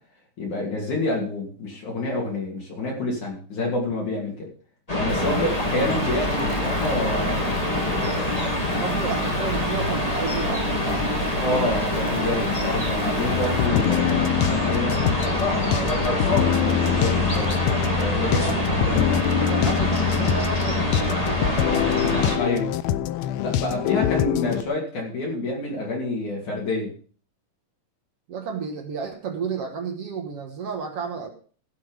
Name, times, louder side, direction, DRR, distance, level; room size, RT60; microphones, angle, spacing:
voice 1, 0.4-4.5 4.9-8.3 8.7-8.9 11.4-14.9 15.5-15.8 16.2-17.6 17.9-18.9 22.4-22.7 23.4-26.9, left 2 dB, 60° left, -2 dB, 4.0 m, -28 dB
sound 1, 4.9-22.4, left 1 dB, 10° left, 2.5 m, -25 dB
sound 2, 5.1-13.7, right 11 dB, 85° right, 2.4 m, -39 dB
voice 2, 8.8-11.5 15.6-15.9 18.2-22.4 23.7-24.0 28.3-31.3, right 6 dB, 55° right, 4 dB, 2.0 m, -33 dB
sound 3, 13.3-24.6, left 9 dB, 80° left, 1.6 m, -25 dB
15.5 x 7.6 x 5.3 m, 0.42 s
omnidirectional pair, 3.9 m